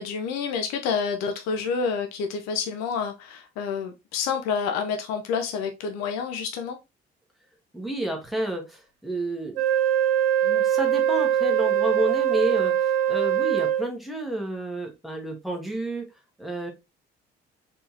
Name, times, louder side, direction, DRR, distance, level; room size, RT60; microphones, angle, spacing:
voice 1, 0.0-6.8, left 6 dB, 60° left, 5 dB, 0.7 m, -28 dB
voice 2, 7.7-9.6 10.4-16.1 16.4-16.7, right 1 dB, ahead, 1 dB, 1.6 m, -30 dB
Wind instrument woodwind instrument, 9.5-13.9, right 10 dB, 75° right, 0.6 m, -22 dB
4.3 x 3.6 x 2.8 m, 0.24 s
figure-of-eight pair, 45°, 31 cm